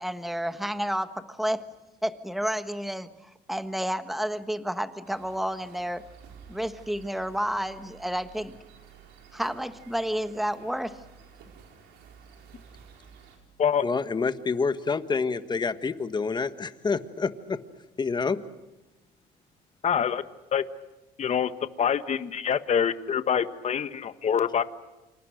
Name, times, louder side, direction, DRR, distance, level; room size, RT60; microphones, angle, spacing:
voice 1, 0.0-1.7 2.0-6.0 6.5-8.6 9.3-11.0, equal, ahead, 1.4 m, -30 dB
sound 1, 5.0-13.4, right 7 dB, 85° right, 4.8 m, -52 dB
voice 2, 13.8-17.6 18.0-18.4, left 4 dB, 25° left, 1.5 m, -28 dB
voice 3, 19.8-20.2 20.5-20.6 21.2-21.5 21.8-24.6, left 8 dB, 40° left, 1.5 m, -25 dB
28.5 x 26.0 x 6.5 m
cardioid pair, 110°, 17 cm